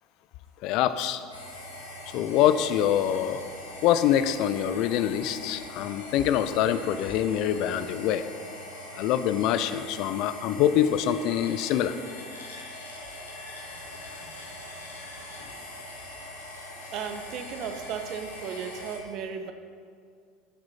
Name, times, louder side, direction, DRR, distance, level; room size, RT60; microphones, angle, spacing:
voice 1, 0.6-1.2 2.1-3.4 3.8-8.2 8.9-12.0, left 10 dB, 55° left, 12 dB, 0.5 m, -25 dB
sound 1, 1.3-19.0, left 1 dB, 85° left, 1.6 m, -42 dB
voice 2, 16.9-19.5, right 7 dB, 50° right, 7 dB, 1.0 m, -35 dB
10.5 x 8.1 x 5.6 m, 2.1 s
hypercardioid pair, 75°, 0 cm